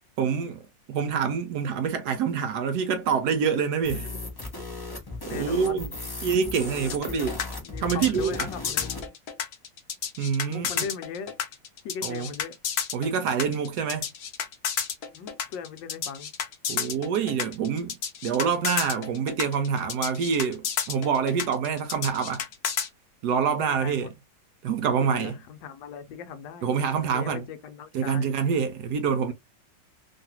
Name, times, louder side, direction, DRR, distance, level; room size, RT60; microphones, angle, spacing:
voice 1, 0.2-0.6 0.9-4.1 5.3-5.9 6.2-7.4 7.8-8.5 10.2-10.8 12.0-12.3 12.9-14.1 16.7-22.4 23.2-24.1 24.6-25.4 26.6-27.4 27.9-29.3, right 6 dB, 75° right, 1.0 m, -26 dB
sound 1, 3.8-9.1, left 2 dB, 35° left, 0.4 m, -37 dB
voice 2, 5.3-6.0 7.1-7.3 7.6-9.1 10.5-11.3 11.8-12.6 15.1-16.3 23.5-24.1 25.0-26.7 27.1-28.3 29.3-29.4, left 7 dB, 85° left, 1.3 m, -39 dB
sound 2, 6.9-22.9, left 7 dB, 65° left, 1.1 m, -31 dB
3.2 x 2.3 x 2.8 m
omnidirectional pair, 2.0 m